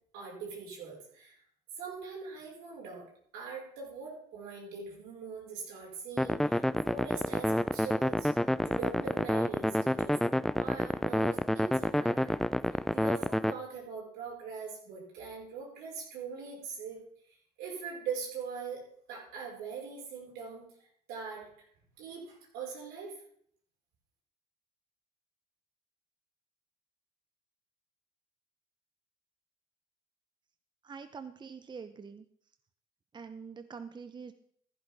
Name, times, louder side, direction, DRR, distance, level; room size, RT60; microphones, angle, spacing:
voice 1, 0.1-1.4 1.8-3.0 3.3-8.3 8.6-12.4 12.7-17.0 17.3-18.8 19.1-20.6 21.1-21.5 22.0-23.1, right 5 dB, 75° right, -2 dB, 5.1 m, -42 dB
sound 1, 6.2-13.5, equal, ahead, 0.5 m, -29 dB
voice 2, 30.8-32.3 33.1-34.3, right 5 dB, 30° right, 10 dB, 0.8 m, -45 dB
14.5 x 11.5 x 3.6 m, 0.64 s
supercardioid pair, 70°, 16 cm